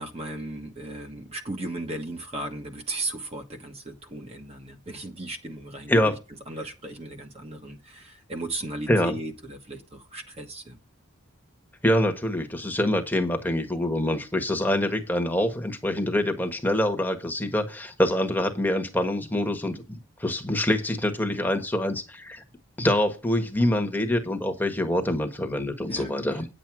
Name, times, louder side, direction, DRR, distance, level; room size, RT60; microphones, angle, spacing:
voice 1, 0.0-6.2 6.5-10.8 25.9-26.1, right 2 dB, 30° right, 1.3 m, -36 dB
voice 2, 11.8-19.7 20.2-22.4 22.8-26.5, left 1 dB, 10° left, 1.4 m, -25 dB
10.0 x 7.6 x 4.8 m
head